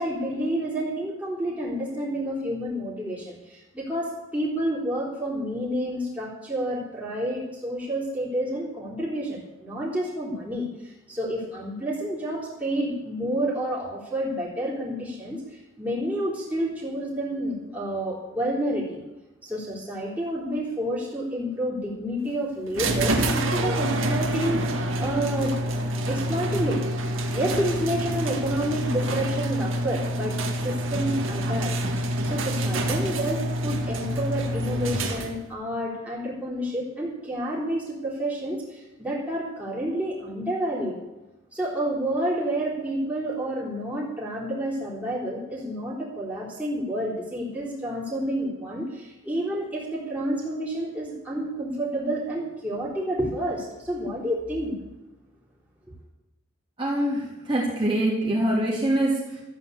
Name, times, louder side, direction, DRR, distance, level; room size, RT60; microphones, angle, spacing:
voice 1, 0.0-19.0 19.4-26.8 27.3-31.7 32.2-40.9 41.5-54.7, right 1 dB, 10° right, -5 dB, 3.8 m, -29 dB
sound 1, 22.7-35.5, right 1 dB, 80° right, 1.9 m, -27 dB
voice 2, 56.8-59.4, right 1 dB, 25° right, -5 dB, 3.3 m, -24 dB
13.5 x 9.2 x 8.2 m, 0.99 s
head